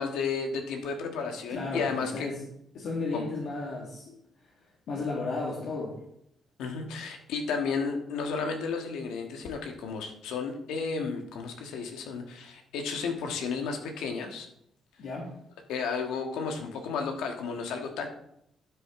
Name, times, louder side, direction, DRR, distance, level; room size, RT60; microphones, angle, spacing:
voice 1, 0.0-2.3 3.1-3.3 6.6-14.5 15.7-18.1, left 5 dB, 90° left, 4 dB, 1.5 m, -33 dB
voice 2, 1.5-2.4 2.7-4.2 4.9-6.0 15.0-15.3, left 3 dB, 70° left, -2 dB, 1.9 m, -34 dB
12.0 x 7.1 x 3.7 m, 0.75 s
cardioid pair, 90°, 0 cm